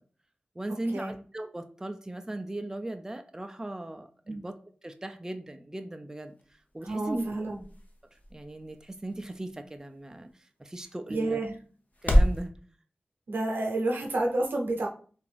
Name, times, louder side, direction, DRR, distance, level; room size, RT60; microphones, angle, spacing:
voice 1, 0.6-4.5 4.8-6.3 6.7-7.3 8.3-11.4 12.0-12.5, right 1 dB, 15° right, 7 dB, 0.4 m, -38 dB
sound 1, 6.2-12.4, equal, 50° left, 0.7 m, -31 dB
voice 2, 6.8-7.6 11.1-11.5 13.3-14.9, right 2 dB, 85° right, 0 dB, 0.8 m, -30 dB
3.4 x 2.5 x 3.3 m, 0.43 s
cardioid pair, 45°, 4 cm